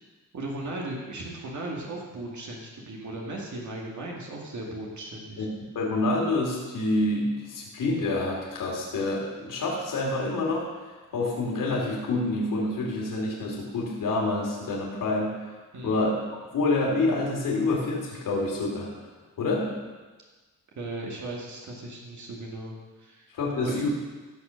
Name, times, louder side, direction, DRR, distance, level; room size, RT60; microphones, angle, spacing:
voice 1, 0.3-5.5 15.7-16.0 20.8-22.7 23.0-23.3 23.6-23.9, right 2 dB, 65° right, -2 dB, 2.2 m, -37 dB
voice 2, 5.7-10.7 11.1-15.5 15.8-16.2 16.5-18.9 19.4-19.7 23.3-23.9, left 2 dB, 85° left, -3 dB, 2.9 m, -27 dB
14.5 x 6.9 x 6.5 m, 1.3 s
wide cardioid pair, 140°, 32 cm